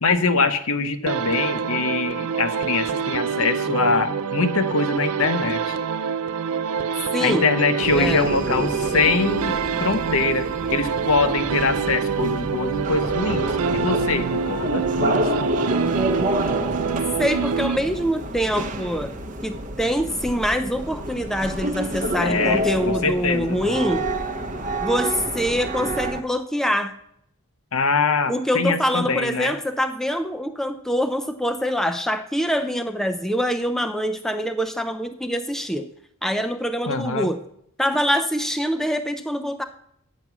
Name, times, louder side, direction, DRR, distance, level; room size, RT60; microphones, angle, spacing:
voice 1, 0.0-5.8 7.2-9.5 9.8-15.4 22.2-23.6 27.7-29.5 36.9-37.3, left 4 dB, 70° left, 10 dB, 0.8 m, -23 dB
sound 1, 1.1-18.3, right 6 dB, 85° right, 0.5 m, -26 dB
voice 2, 7.1-7.5 8.0-8.3 17.2-19.1 19.4-24.1 24.8-26.9 28.3-35.9 36.2-37.4 37.8-39.6, equal, ahead, 7 dB, 0.4 m, -24 dB
sound 2, 7.8-26.2, right 1 dB, 35° right, 0.7 m, -29 dB
9.2 x 7.4 x 6.0 m, 0.72 s
head